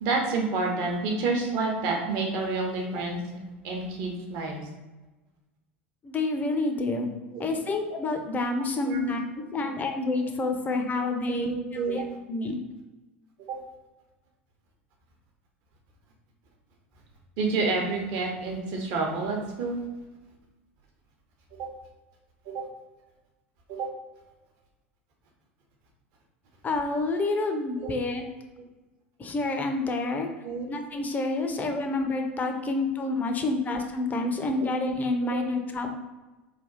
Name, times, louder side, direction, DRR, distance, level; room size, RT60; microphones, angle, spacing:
voice 1, 0.0-3.2 3.6-4.6 7.3-7.4 8.9-9.1 11.0-12.0 13.5-13.6 17.4-19.8 21.6-21.7 22.5-22.6 23.7-23.9 27.8-27.9 30.4-30.7 31.5-31.6 35.2-35.4, right 3 dB, 55° right, 0 dB, 0.9 m, -29 dB
voice 2, 6.0-7.1 7.4-9.2 9.5-12.6 26.6-28.3 29.2-30.3 30.7-35.9, left 2 dB, 25° left, 4 dB, 0.5 m, -28 dB
3.3 x 2.3 x 3.9 m, 1.1 s
figure-of-eight pair, 80°, 7 cm